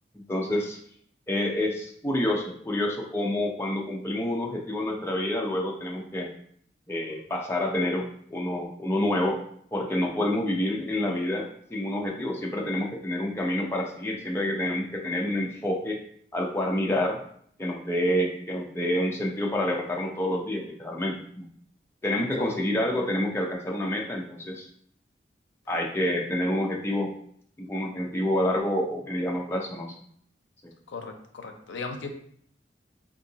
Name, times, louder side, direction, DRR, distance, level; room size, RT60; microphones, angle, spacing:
voice 1, 0.1-0.8 1.3-6.3 6.9-8.1 8.3-9.4 9.7-16.0 16.3-17.2 17.6-21.5 22.0-24.7 25.7-27.1 27.6-30.0 30.6-30.7, left 1 dB, 15° left, -1 dB, 0.4 m, -28 dB
voice 2, 30.9-32.1, left 3 dB, 80° left, 5 dB, 0.5 m, -37 dB
3.7 x 2.6 x 2.7 m, 0.63 s
head